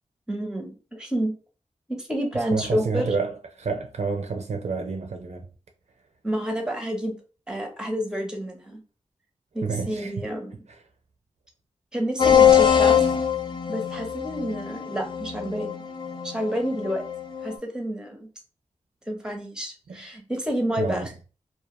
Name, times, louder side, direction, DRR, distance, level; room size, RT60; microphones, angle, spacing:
voice 1, 0.3-1.3 1.9-3.1 6.2-7.1 7.5-8.8 9.5-10.6 11.9-13.0 13.7-15.8 16.2-17.0 17.4-18.3 19.1-21.1, equal, 5° right, 0.7 m, -29 dB
voice 2, 2.5-5.5 9.6-10.1 19.9-20.0 20.8-21.1, right 4 dB, 65° right, 0.4 m, -29 dB
sound 1, 12.2-17.5, left 8 dB, 40° left, 0.5 m, -22 dB
2.2 x 2.2 x 2.9 m
wide cardioid pair, 60°, 12 cm